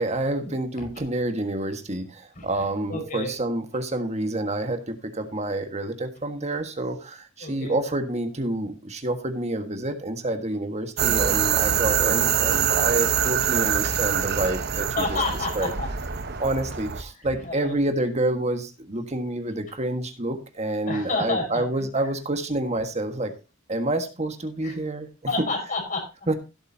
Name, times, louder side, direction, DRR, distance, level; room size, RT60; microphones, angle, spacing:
voice 1, 0.0-14.9 15.5-15.7 16.4-23.3 23.7-25.3 26.3-26.4, right 1 dB, 35° right, 7 dB, 1.6 m, -28 dB
voice 2, 2.9-3.3 7.4-7.8 15.0-15.9 17.4-17.8 20.9-21.6 24.6-24.8 25.3-26.1, left 3 dB, 45° left, 2 dB, 5.5 m, -29 dB
sound 1, 11.0-17.0, right 8 dB, 55° right, 1.0 m, -24 dB
16.0 x 8.1 x 2.8 m, 0.29 s
head